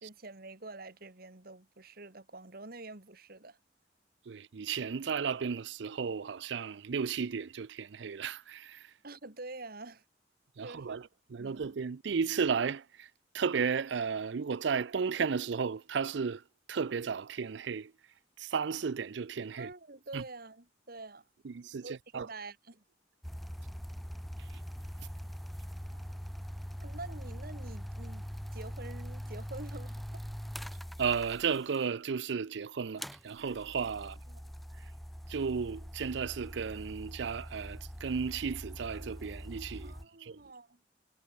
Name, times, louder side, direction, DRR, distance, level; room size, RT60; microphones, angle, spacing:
voice 1, 0.0-3.6 9.0-10.0 10.6-11.0 11.4-11.7 19.6-21.3 21.8-22.8 26.8-28.3 28.5-30.2 34.3-34.4 39.8-40.8, right 2 dB, 55° right, 2.0 m, -47 dB
voice 2, 4.3-8.9 10.6-16.4 16.7-17.9 18.4-19.7 20.1-20.2 21.4-22.3 24.4-24.6 31.0-34.2 34.8-34.9 35.3-39.9 40.2-40.4, right 6 dB, 70° right, 0.5 m, -34 dB
sound 1, 23.2-31.9 33.0-40.0, equal, ahead, 0.7 m, -43 dB
head